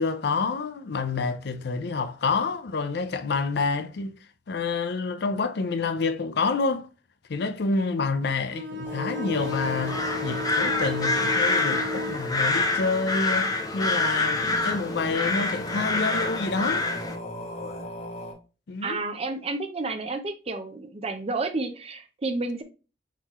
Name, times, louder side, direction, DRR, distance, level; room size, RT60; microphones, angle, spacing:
voice 1, 0.0-4.2 4.5-6.9 7.3-16.9 18.7-19.0, left 4 dB, 65° left, 0.5 m, -28 dB
Bowed string instrument, 8.5-12.3, left 1 dB, 85° right, 1.0 m, -34 dB
sound 1, 8.8-18.3, left 2 dB, 35° left, 1.3 m, -37 dB
sound 2, 9.3-17.2, left 3 dB, 20° left, 0.7 m, -27 dB
voice 2, 18.8-22.6, right 3 dB, 35° right, 0.7 m, -30 dB
4.2 x 4.1 x 3.0 m
head